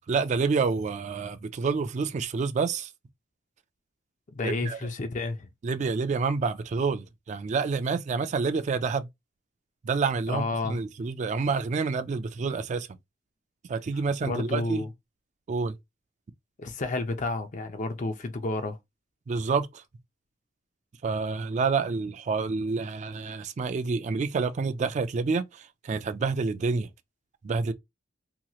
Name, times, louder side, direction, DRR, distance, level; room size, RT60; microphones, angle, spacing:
voice 1, 0.1-2.9 4.4-4.8 5.6-9.1 9.8-12.9 13.7-14.8 15.5-15.8 19.3-19.8 21.0-26.9 27.4-27.7, right 4 dB, 40° right, 0.3 m, -28 dB
voice 2, 4.3-5.5 10.3-10.8 14.3-14.9 16.6-18.8, left 2 dB, 40° left, 0.5 m, -30 dB
2.9 x 2.9 x 2.3 m
head